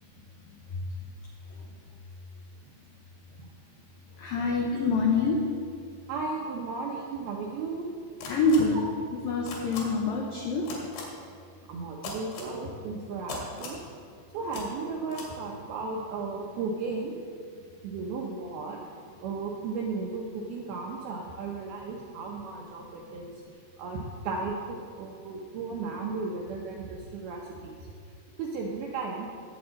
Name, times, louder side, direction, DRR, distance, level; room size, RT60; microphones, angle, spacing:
voice 1, 4.2-5.4 8.3-8.8 9.2-10.7, left 3 dB, 90° left, -1 dB, 2.0 m, -26 dB
voice 2, 6.1-7.9 8.6-8.7 11.7-13.8 14.3-17.1 17.8-23.4 23.8-27.9 28.4-29.3, right 4 dB, 80° right, -1 dB, 2.2 m, -35 dB
sound 1, 8.2-8.6 9.5-9.8 10.7-11.0 12.0-12.5 13.3-13.8 14.5-14.6 15.1-15.3, left 5 dB, 70° left, 4.3 m, -38 dB
19.5 x 7.9 x 4.0 m, 2.3 s
omnidirectional pair, 5.6 m